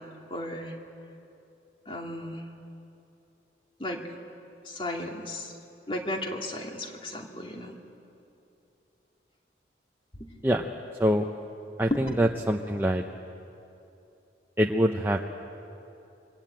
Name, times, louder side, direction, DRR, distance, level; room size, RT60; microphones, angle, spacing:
voice 1, 0.3-0.8 1.9-2.4 3.8-4.0 4.7-5.5 5.9-7.7 10.2-10.3 11.9-12.0, left 1 dB, 30° left, 1 dB, 2.4 m, -34 dB
voice 2, 11.8-13.0 14.6-15.3, equal, 10° right, 1 dB, 0.8 m, -24 dB
26.0 x 23.5 x 8.9 m, 2.8 s
head